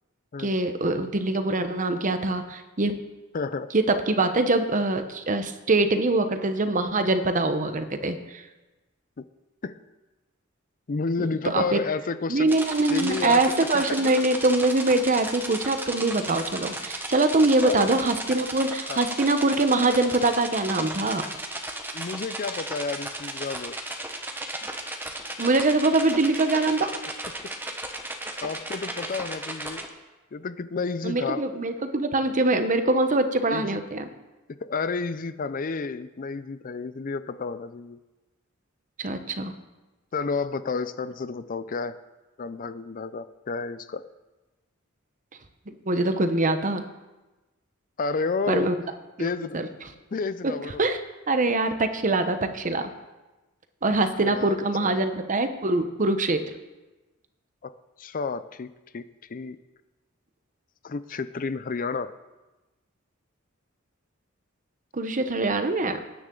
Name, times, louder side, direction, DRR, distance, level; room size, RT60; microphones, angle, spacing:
voice 1, 0.4-3.0 3.7-8.4 11.2-11.8 12.3-21.2 25.4-27.0 31.0-34.1 39.0-39.5 45.9-46.8 48.5-48.8 49.2-49.7 50.4-50.5 50.8-51.0 51.3-52.9 53.8-56.4 64.9-66.0, right 2 dB, 40° right, 8 dB, 0.9 m, -23 dB
voice 2, 3.3-3.7 9.2-9.3 9.6-9.8 10.9-12.5 12.9-14.1 17.6-17.9 18.9-19.0 21.9-23.7 28.4-29.8 30.3-31.4 33.5-33.8 34.6-38.0 40.1-42.0 42.4-44.0 48.0-48.7 49.2-49.6 50.1-50.8 54.3-54.6 54.8-55.0 57.6-57.7 58.0-59.0 59.3-59.6 60.8-62.1, left 4 dB, 40° left, 13 dB, 0.5 m, -31 dB
sound 1, 12.5-29.9, right 1 dB, 10° right, 1.1 m, -35 dB
19.0 x 9.6 x 3.8 m, 1.1 s
head